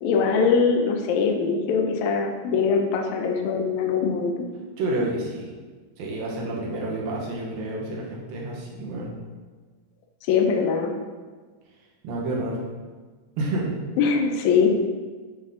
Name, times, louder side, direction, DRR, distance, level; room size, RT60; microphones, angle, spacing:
voice 1, 0.0-4.4 10.3-10.9 14.0-14.8, left 5 dB, 85° left, 2 dB, 1.6 m, -22 dB
voice 2, 4.8-5.5 6.0-9.1 12.0-12.6 13.4-13.7, right 2 dB, 75° right, -2 dB, 2.8 m, -29 dB
7.8 x 3.6 x 3.7 m, 1.4 s
omnidirectional pair, 4.1 m